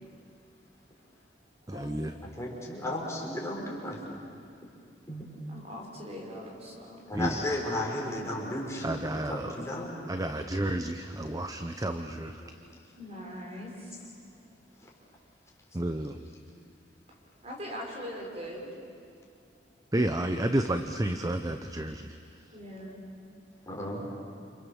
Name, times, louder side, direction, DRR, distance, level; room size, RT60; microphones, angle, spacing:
voice 1, 1.0-2.1 5.5-7.1 12.9-14.6 15.0-15.1 17.1-18.7 19.5-19.6 22.5-23.1 23.6-23.7, equal, 40° right, 0 dB, 5.2 m, -43 dB
voice 2, 1.7-2.1 7.1-7.5 8.8-9.6 10.1-12.4 15.7-16.2 19.9-22.2, right 1 dB, 20° right, 7 dB, 0.8 m, -31 dB
voice 3, 2.4-4.2 5.1-5.2 7.1-9.9 12.4-12.5 23.7-24.1, left 1 dB, 15° left, -3 dB, 5.4 m, -34 dB
28.5 x 28.0 x 7.2 m, 2.4 s
head